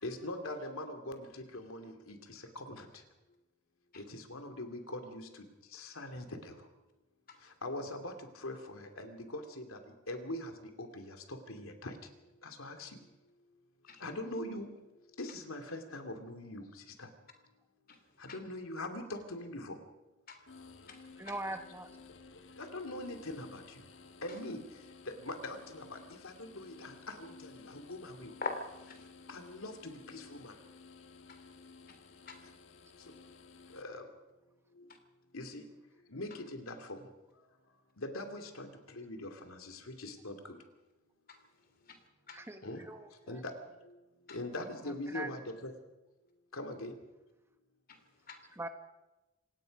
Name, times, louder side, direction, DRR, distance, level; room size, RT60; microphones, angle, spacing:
voice 1, 0.0-2.9 4.0-5.3 5.7-6.5 7.6-9.8 10.1-10.5 10.8-11.9 12.4-12.9 14.0-14.7 15.2-16.6 17.0-17.1 18.2-19.8 22.6-23.8 24.2-24.6 25.1-26.0 26.2-28.3 29.3-30.5 33.7-34.0 35.3-35.6 36.1-37.0 38.0-40.6 42.6-42.8 43.3-43.5 44.3-45.7 46.5-46.9, left 1 dB, 90° left, 5 dB, 2.7 m, -42 dB
voice 2, 17.9-18.4 20.3-21.3 24.3-24.4 28.4-29.1 31.3-32.5 41.3-42.4 44.3-44.4 47.9-48.5, left 3 dB, 45° left, 7 dB, 3.1 m, -46 dB
sound 1, 20.5-33.8, left 4 dB, 65° left, 1.3 m, -55 dB
voice 3, 21.2-21.9 42.3-43.4 45.1-45.3 48.6-48.7, right 2 dB, 10° right, 7 dB, 1.2 m, -41 dB
27.0 x 18.5 x 5.4 m, 1.0 s
head